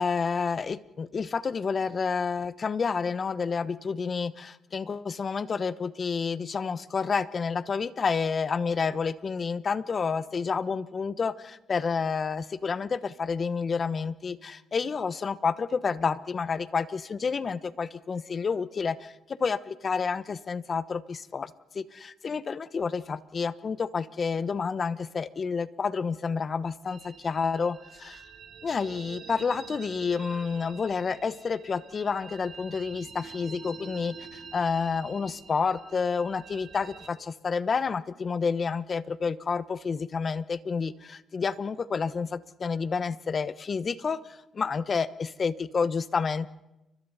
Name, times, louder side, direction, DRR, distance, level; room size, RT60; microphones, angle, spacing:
voice 1, 0.0-19.1 19.4-28.2 28.6-46.5, left 5 dB, 40° left, 15 dB, 1.0 m, -29 dB
sound 1, 26.9-37.1, right 5 dB, 55° right, 2.6 m, -47 dB
29.5 x 24.5 x 4.2 m, 0.92 s
cardioid pair, 90°, 0 cm